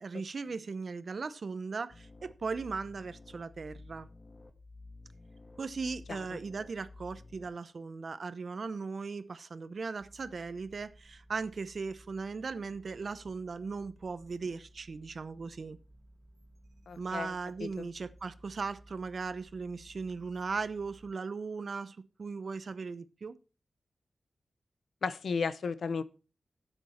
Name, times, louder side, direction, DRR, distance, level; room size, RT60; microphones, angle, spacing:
voice 1, 0.0-4.1 5.6-15.8 17.0-23.4, right 4 dB, 65° right, 0.8 m, -38 dB
sound 1, 1.9-7.5, left 2 dB, 35° left, 1.6 m, -52 dB
voice 2, 6.1-6.4 16.9-17.3 17.6-17.9 25.0-26.0, left 5 dB, 85° left, 0.7 m, -34 dB
sound 2, 10.0-21.1, right 1 dB, 45° right, 2.3 m, -58 dB
11.5 x 8.1 x 4.4 m
cardioid pair, 65°, 0 cm